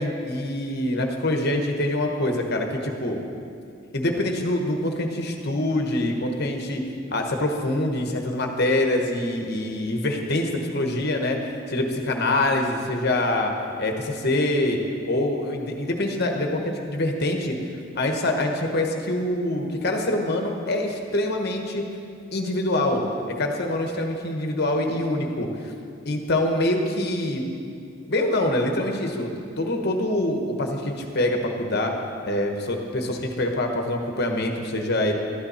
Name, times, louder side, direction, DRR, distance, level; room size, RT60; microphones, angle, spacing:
voice 1, 0.0-3.2 3.9-6.8 7.1-11.4 11.7-13.5 13.8-16.6 16.9-17.6 17.9-21.8 22.3-23.0 23.4-25.7 26.0-27.4 28.1-29.3 29.6-31.9 32.2-35.1, left 1 dB, 50° left, 3 dB, 1.1 m, -25 dB
12.5 x 9.8 x 4.3 m, 2.4 s
head